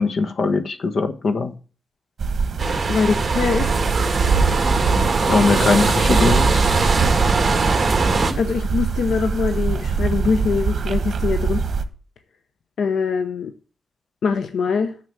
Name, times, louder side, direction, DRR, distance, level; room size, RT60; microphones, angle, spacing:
voice 1, 0.0-1.5 5.3-6.6, left 4 dB, 60° left, 9 dB, 1.3 m, -20 dB
sound 1, 2.2-11.8, right 5 dB, 60° right, 1.2 m, -23 dB
sound 2, 2.6-8.3, right 3 dB, 35° right, 1.8 m, -21 dB
voice 2, 2.9-3.7 8.4-11.6 12.8-13.5 14.2-14.9, left 5 dB, 85° left, 9 dB, 0.8 m, -22 dB
9.5 x 6.9 x 6.9 m, 0.37 s
cardioid pair, 100°, 0 cm